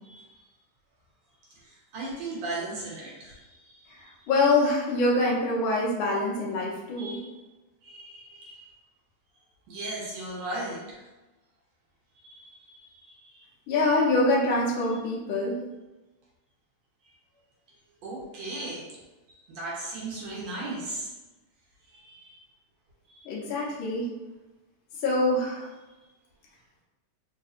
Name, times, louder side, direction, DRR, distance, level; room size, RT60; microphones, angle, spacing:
voice 1, 0.1-0.4 1.6-4.2 7.0-7.3 7.8-8.7 9.7-11.0 12.2-13.4 18.0-18.9 19.3-21.1 21.9-22.4 23.1-23.2 23.5-23.7, right 2 dB, 70° right, -5 dB, 1.9 m, -38 dB
voice 2, 4.3-7.2 13.7-15.6 23.2-24.1 25.0-25.7, left 2 dB, 80° left, -4 dB, 1.1 m, -25 dB
4.6 x 2.7 x 2.5 m, 1.1 s
omnidirectional pair, 3.4 m